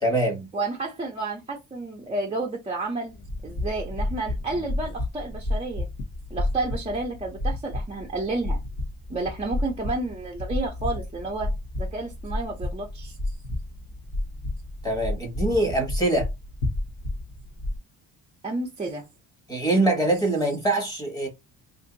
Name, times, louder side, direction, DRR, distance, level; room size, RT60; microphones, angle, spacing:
voice 1, 0.0-0.5 14.8-16.3 19.5-21.3, right 1 dB, 10° left, 1.4 m, -23 dB
voice 2, 0.5-3.1 3.4-5.9 6.3-8.6 9.1-13.2 18.4-19.1, right 2 dB, 15° right, 0.6 m, -31 dB
sound 1, 3.1-17.8, left 1 dB, 55° left, 1.2 m, -31 dB
2.7 x 2.6 x 3.9 m
cardioid pair, 140°, 42 cm